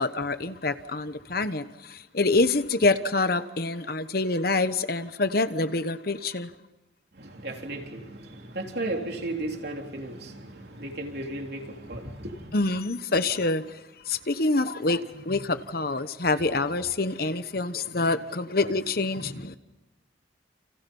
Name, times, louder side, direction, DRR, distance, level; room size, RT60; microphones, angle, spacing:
voice 1, 0.0-6.5 12.5-13.8 14.0-19.6, left 3 dB, 50° left, 1.1 m, -26 dB
voice 2, 7.1-12.5, right 1 dB, 55° right, 3.7 m, -35 dB
30.0 x 29.5 x 5.6 m
head